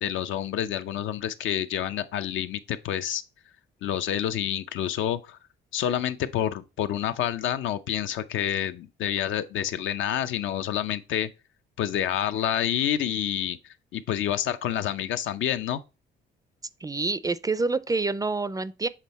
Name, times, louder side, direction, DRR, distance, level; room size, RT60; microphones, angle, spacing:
voice 1, 0.0-3.2 3.8-5.4 5.7-11.3 11.8-15.8, left 10 dB, 80° left, 0.6 m, -28 dB
voice 2, 16.8-18.9, right 3 dB, 20° right, 0.4 m, -27 dB
7.4 x 3.5 x 4.1 m
cardioid pair, 90°, 20 cm